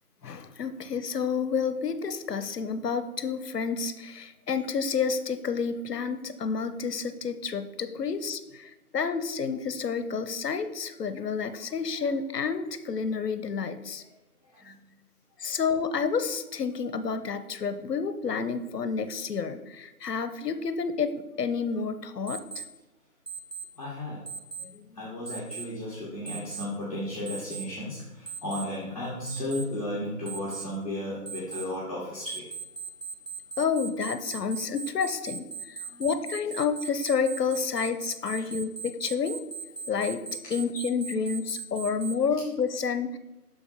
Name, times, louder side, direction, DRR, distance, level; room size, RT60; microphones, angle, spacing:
voice 1, 0.2-14.0 14.7-14.8 15.4-22.6 24.6-25.0 33.6-39.4 39.9-43.2, left 5 dB, 85° left, 11 dB, 0.7 m, -30 dB
Alarm, 22.3-22.6 23.3-23.6 24.3-24.6 25.3-25.6 26.3-26.6 27.3-27.6 28.3-28.6 29.3-29.6 30.3-30.6 31.3-31.6 32.3-42.1, right 6 dB, 40° right, 0.5 m, -38 dB
voice 2, 23.8-24.2 25.0-28.0 28.4-32.4, left 1 dB, 25° left, -8 dB, 1.2 m, -34 dB
6.2 x 4.8 x 4.4 m, 1.0 s
figure-of-eight pair, 170°, 47 cm